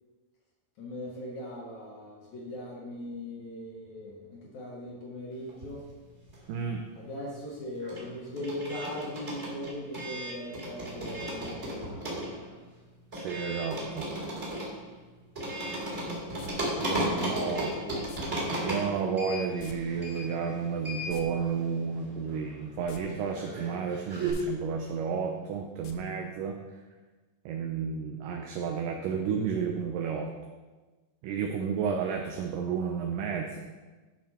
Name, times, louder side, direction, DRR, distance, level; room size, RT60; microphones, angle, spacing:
voice 1, 0.8-5.9 7.0-12.6 17.0-18.2 31.7-31.8, left 1 dB, 60° left, -4 dB, 2.4 m, -40 dB
sound 1, 5.5-6.7 7.0-24.3, right 1 dB, 25° right, 1.9 m, -36 dB
voice 2, 6.5-6.9 13.1-14.1 16.8-17.8 18.6-26.6 27.5-30.3 31.2-33.6, right 6 dB, 80° right, 2 dB, 2.1 m, -32 dB
sound 2, 16.4-16.5 18.1-18.2 19.6-19.8 20.0-20.1 20.9-21.2 22.8-23.0 23.4-23.5 24.2-24.4 25.8-25.9 26.3-26.4, left 7 dB, 75° left, 1.9 m, -46 dB
11.5 x 5.2 x 4.3 m, 1.2 s
omnidirectional pair, 4.3 m